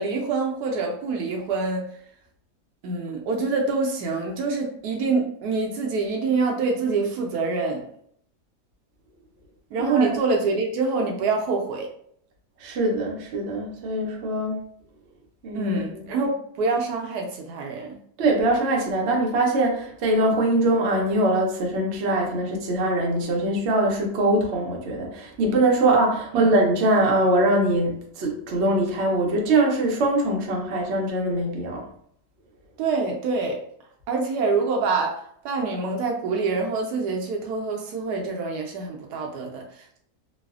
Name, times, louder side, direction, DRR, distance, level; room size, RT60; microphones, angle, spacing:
voice 1, 0.0-1.9 2.8-7.9 9.7-11.9 15.5-18.0 26.3-26.5 32.8-33.6 34.1-40.0, right 4 dB, 75° right, 1 dB, 1.1 m, -26 dB
voice 2, 9.8-10.1 12.6-14.6 15.4-15.9 18.2-31.8, right 1 dB, 60° right, 0 dB, 0.7 m, -22 dB
3.1 x 2.0 x 2.3 m, 0.65 s
omnidirectional pair, 1.8 m